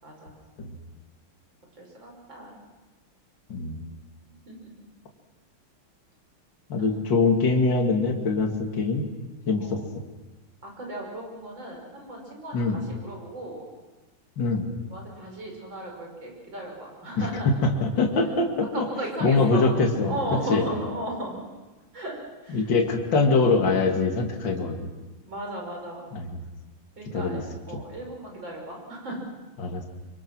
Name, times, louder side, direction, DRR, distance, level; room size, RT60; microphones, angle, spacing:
voice 1, 0.0-0.4 1.8-2.6 4.5-4.7 6.8-6.9 9.6-9.9 10.6-13.6 14.9-17.6 18.7-21.4 21.9-22.2 22.4-22.7 25.3-26.1 27.0-27.4 27.7-29.3, right 1 dB, 55° right, 0 dB, 6.7 m, -36 dB
voice 2, 3.5-3.8 6.7-9.1 9.5-9.8 12.5-12.8 14.4-14.7 17.2-17.3 17.6-18.8 19.2-20.2 20.5-20.7 22.5-24.9 26.1-26.4 27.1-27.4 27.7-27.8 29.6-29.9, left 3 dB, 55° left, 2 dB, 2.9 m, -23 dB
26.0 x 24.5 x 6.2 m, 1.2 s
omnidirectional pair, 2.4 m